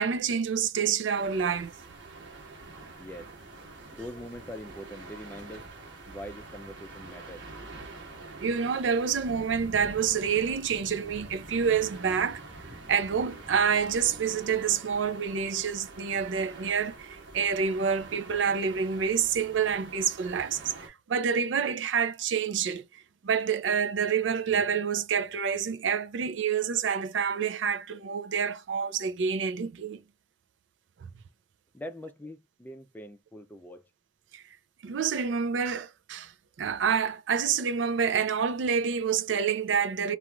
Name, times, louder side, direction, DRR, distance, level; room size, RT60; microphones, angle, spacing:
voice 1, 0.0-1.7 8.4-12.4 12.9-20.6 20.9-22.8 23.2-30.0 34.3-34.4 34.8-36.3 36.6-40.2, right 6 dB, 90° right, 0.4 m, -28 dB
sound 1, 1.1-20.9, right 3 dB, 75° right, 1.2 m, -46 dB
voice 2, 3.0-3.3 3.9-5.7 6.1-7.4 31.7-33.8, equal, 10° left, 0.3 m, -43 dB
sound 2, 3.2-14.4, equal, 55° right, 1.3 m, -50 dB
3.0 x 2.4 x 2.2 m
head